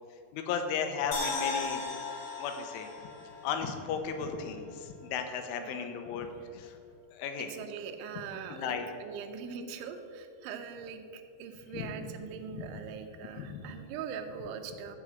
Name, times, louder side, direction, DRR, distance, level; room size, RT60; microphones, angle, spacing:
voice 1, 0.3-1.8 2.4-2.9 3.4-6.3 6.5-6.8 7.1-7.5 8.5-8.9 11.7-11.9 12.5-12.8 13.4-13.7, left 6 dB, 85° left, 6 dB, 3.4 m, -35 dB
sound 1, 1.1-4.3 4.7-4.8, left 4 dB, 60° left, 1.9 m, -37 dB
voice 2, 7.4-15.0, right 6 dB, 80° right, 5 dB, 3.2 m, -42 dB
13.5 x 4.9 x 7.4 m, 2.5 s
omnidirectional pair, 5.5 m